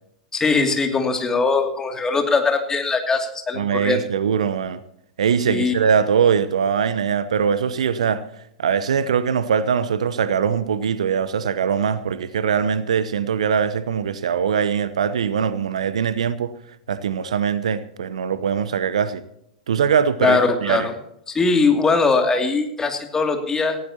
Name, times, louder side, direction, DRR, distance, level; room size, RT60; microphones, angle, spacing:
voice 1, 0.3-4.0 5.5-5.8 20.2-20.9 21.3-23.8, left 4 dB, 15° left, 2.5 m, -20 dB
voice 2, 3.5-4.8 5.2-8.2 8.6-16.5 16.9-19.2 19.7-20.9, right 7 dB, 65° right, 0.9 m, -22 dB
19.0 x 16.5 x 2.9 m
figure-of-eight pair, 95°, 4 cm